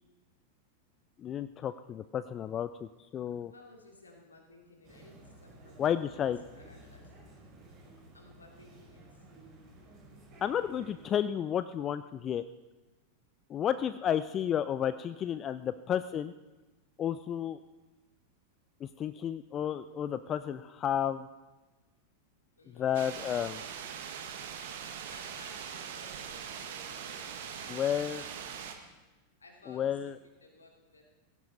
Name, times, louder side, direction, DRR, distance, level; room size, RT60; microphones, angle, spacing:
voice 1, 1.2-3.5 5.8-6.4 10.4-12.4 13.5-16.3 17.0-17.6 18.8-21.3 22.8-23.6 27.7-28.2 29.7-30.2, left 9 dB, 30° left, 13 dB, 0.4 m, -32 dB
voice 2, 3.5-6.3 6.5-7.1 8.1-9.2 21.7-21.9 22.6-23.9 24.7-28.7 29.4-31.0, left 2 dB, 75° left, 0 dB, 3.1 m, -57 dB
sound 1, 4.8-11.1, right 1 dB, 35° right, 6.0 m, -54 dB
sound 2, 22.9-28.7, right 8 dB, 55° right, 1.6 m, -42 dB
17.0 x 16.5 x 4.2 m, 1.1 s
figure-of-eight pair, 90°, 0 cm